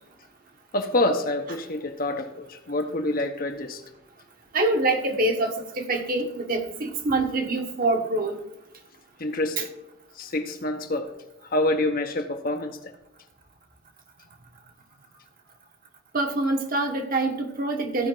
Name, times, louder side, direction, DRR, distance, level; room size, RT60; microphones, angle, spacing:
voice 1, 0.7-3.8 9.2-9.7 10.2-11.1 11.5-12.8, left 1 dB, 45° left, 0.9 m, -27 dB
voice 2, 4.5-8.4 9.6-9.7 16.1-18.1, right 2 dB, 45° right, 1.2 m, -25 dB
15.0 x 5.3 x 3.8 m
head